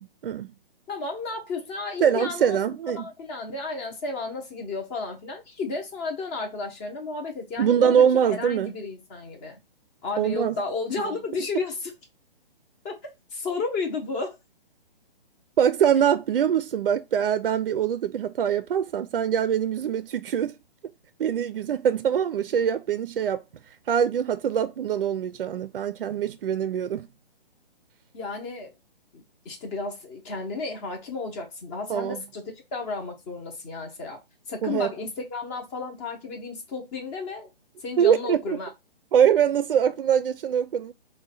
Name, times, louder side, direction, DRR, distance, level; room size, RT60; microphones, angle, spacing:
voice 1, 0.9-2.6 2.9-9.6 10.0-11.9 12.8-14.4 28.1-28.7 29.1-34.2 34.5-37.5 37.8-38.7, left 4 dB, 15° left, 0.6 m, -33 dB
voice 2, 2.0-3.1 7.6-8.7 10.2-10.6 15.6-20.5 21.2-23.4 23.9-27.1 31.9-32.2 34.6-34.9 38.0-38.6 39.1-40.9, right 8 dB, 65° right, 0.5 m, -23 dB
4.5 x 2.2 x 4.0 m
hypercardioid pair, 155°, 29 cm